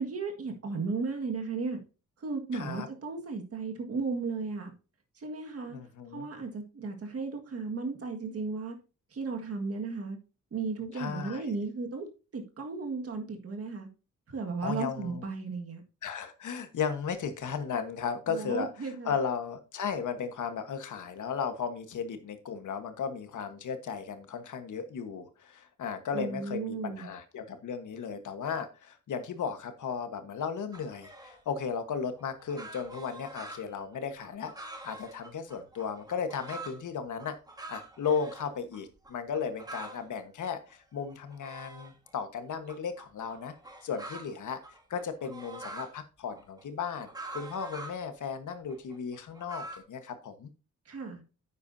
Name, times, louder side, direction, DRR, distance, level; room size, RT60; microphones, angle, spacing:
voice 1, 0.0-1.8 2.2-4.7 5.2-5.8 6.1-8.8 9.1-10.2 10.5-12.1 12.3-13.9 14.3-15.8 18.3-19.1 26.1-27.1 50.9-51.2, right 4 dB, 50° right, 3 dB, 1.8 m, -35 dB
voice 2, 2.5-2.9 5.7-6.3 10.9-11.5 14.6-15.3 16.0-34.5 34.8-37.4 37.7-43.5 43.8-44.6 44.9-50.5, left 6 dB, 75° left, 9 dB, 1.4 m, -35 dB
sound 1, 30.7-31.4 32.2-36.8 37.2-38.5 38.7-38.8 39.0-40.0 40.4-42.1 42.7-45.9 46.3-48.0 48.5-49.8, right 2 dB, 10° right, 1.5 m, -45 dB
10.0 x 8.3 x 2.7 m, 0.32 s
wide cardioid pair, 180°, 31 cm